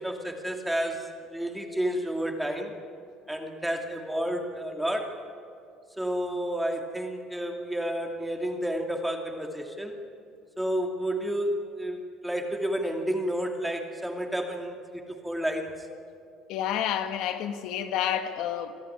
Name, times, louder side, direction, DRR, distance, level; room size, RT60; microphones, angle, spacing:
voice 1, 0.0-2.7 3.3-5.2 6.0-10.0 10.6-15.9, equal, 5° right, 2.6 m, -31 dB
voice 2, 16.5-18.7, left 10 dB, 75° left, 1.3 m, -29 dB
25.0 x 14.0 x 9.7 m
cardioid pair, 115°, 0 cm